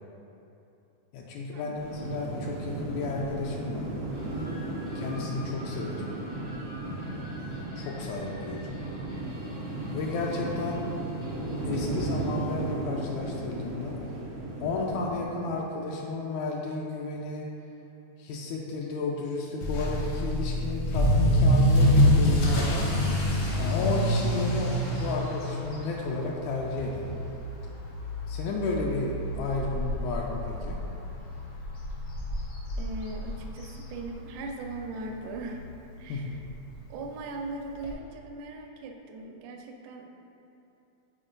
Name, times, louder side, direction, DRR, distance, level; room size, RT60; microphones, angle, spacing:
voice 1, 1.1-3.9 5.0-6.1 7.4-8.8 9.9-10.8 11.6-14.0 14.6-17.5 18.2-22.9 23.6-27.2 28.3-30.8 36.1-36.3, left 3 dB, 85° left, -2 dB, 1.9 m, -33 dB
sound 1, 1.8-15.2, right 2 dB, 65° right, 1.0 m, -35 dB
sound 2, 4.1-12.4, equal, 50° left, 0.6 m, -43 dB
Motor vehicle (road) / Accelerating revving vroom, 19.6-34.5 34.8-35.1 35.7-35.8 36.1-36.2 36.4-36.5 37.8-37.9, equal, 65° left, 1.1 m, -26 dB
voice 2, 32.8-35.7 36.0-36.4 36.9-40.0, right 2 dB, 85° right, 2 dB, 2.0 m, -39 dB
6.1 x 4.4 x 3.9 m, 2.8 s
omnidirectional pair, 3.3 m